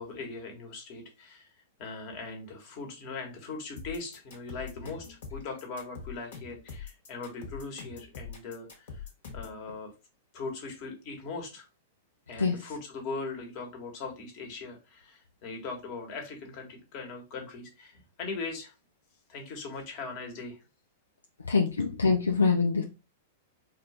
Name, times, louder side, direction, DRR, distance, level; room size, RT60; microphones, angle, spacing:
voice 1, 0.0-1.5 1.8-9.0 9.3-9.9 10.3-11.7 12.3-18.7 19.3-20.6, left 3 dB, 45° left, 1.5 m, -40 dB
sound 1, 3.8-9.6, left 6 dB, 60° left, 1.5 m, -43 dB
voice 2, 21.5-22.8, left 4 dB, 85° left, 0.5 m, -24 dB
4.3 x 2.6 x 3.4 m
figure-of-eight pair, 100°, 0 cm